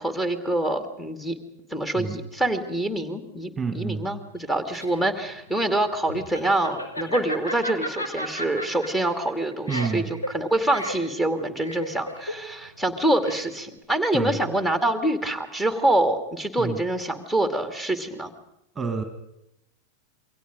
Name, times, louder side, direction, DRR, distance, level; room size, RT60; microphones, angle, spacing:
voice 1, 0.0-1.4 1.7-18.3, right 1 dB, 5° left, 7 dB, 2.4 m, -25 dB
voice 2, 3.6-4.0 9.7-10.1 14.1-14.4 16.6-16.8 18.8-19.0, right 5 dB, 15° right, 8 dB, 2.0 m, -28 dB
Laughter, 4.4-13.8, equal, 80° left, 3.5 m, -34 dB
28.0 x 23.5 x 5.3 m, 0.83 s
figure-of-eight pair, 90°, 0 cm